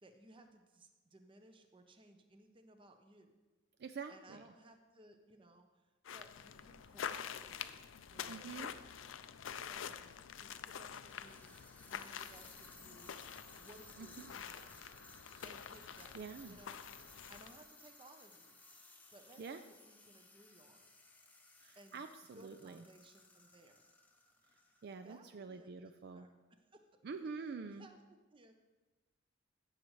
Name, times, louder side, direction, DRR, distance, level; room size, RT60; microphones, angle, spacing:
voice 1, 0.0-3.3 4.1-8.6 9.5-11.6 11.8-13.1 13.6-14.8 15.4-16.1 16.4-18.6 19.1-20.9 21.7-22.0 22.3-23.9 25.0-26.9 27.8-28.5, right 1 dB, 25° right, 6 dB, 0.7 m, -61 dB
voice 2, 3.8-4.4 8.3-8.7 14.0-14.3 16.1-16.6 19.4-19.6 21.6-22.8 24.8-26.3 27.0-27.9, right 5 dB, 55° right, 8 dB, 0.4 m, -46 dB
sound 1, 6.0-17.6, left 8 dB, 70° left, 0.4 m, -47 dB
sound 2, 7.7-7.8 8.8-8.9 10.9-25.0, left 2 dB, 10° left, 0.7 m, -60 dB
15.0 x 6.4 x 3.2 m, 1.2 s
head